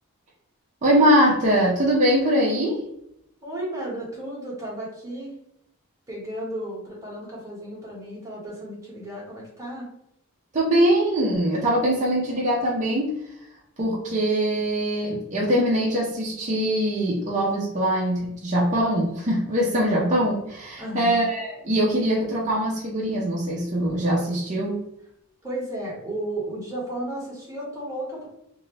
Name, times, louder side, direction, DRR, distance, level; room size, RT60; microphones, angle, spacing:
voice 1, 0.8-2.8 10.5-13.1 13.8-24.8, equal, 35° right, -5 dB, 0.6 m, -22 dB
voice 2, 3.4-5.3 6.1-9.9 20.8-21.3 25.4-28.3, right 1 dB, 15° right, -7 dB, 1.3 m, -33 dB
2.6 x 2.6 x 3.1 m, 0.79 s
head